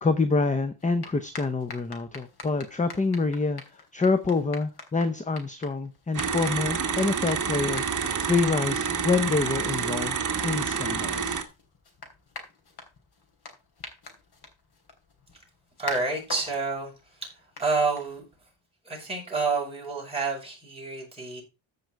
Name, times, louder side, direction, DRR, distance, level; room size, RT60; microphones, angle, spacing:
voice 1, 0.0-7.8 8.3-10.2 10.4-11.4, left 3 dB, 15° left, 0.7 m, -26 dB
sound 1, 0.8-18.5, left 3 dB, 50° left, 3.5 m, -46 dB
sound 2, 6.1-11.4, right 6 dB, 40° right, 1.7 m, -28 dB
voice 2, 15.8-16.9 17.6-18.2 18.9-21.4, right 4 dB, 10° right, 6.3 m, -28 dB
14.5 x 5.5 x 4.6 m
wide cardioid pair, 140°, 48 cm